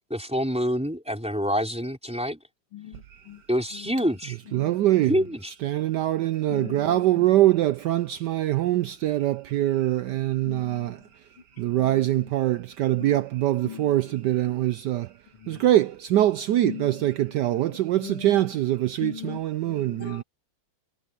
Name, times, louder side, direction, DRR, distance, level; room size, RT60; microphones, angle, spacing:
voice 1, 0.1-2.4 3.5-4.4 5.1-5.5, equal, 5° right, 3.9 m, -26 dB
voice 2, 2.7-3.4 3.7-4.0 4.5-4.9 6.5-7.3 10.5-11.0 11.6-12.3 13.0-13.2 13.6-14.2 14.5-14.7 15.4-15.6 16.6-18.4 19.0-20.2, left 10 dB, 90° left, 2.9 m, -41 dB
voice 3, 4.5-5.2 5.6-11.0 11.6-15.1 15.5-20.2, right 14 dB, 90° right, 0.9 m, -23 dB
omnidirectional pair, 2.4 m